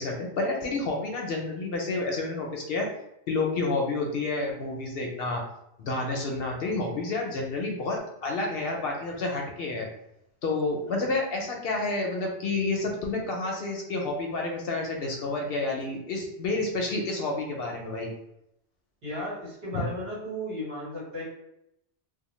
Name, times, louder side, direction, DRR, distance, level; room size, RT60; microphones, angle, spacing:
voice 1, 0.0-2.9 3.3-5.4 5.8-9.9 10.4-18.1 19.7-19.9, left 3 dB, 65° left, 0 dB, 0.7 m, -29 dB
voice 2, 19.0-21.2, equal, 60° right, -7 dB, 1.6 m, -35 dB
2.7 x 2.1 x 3.0 m, 0.80 s
omnidirectional pair, 1.1 m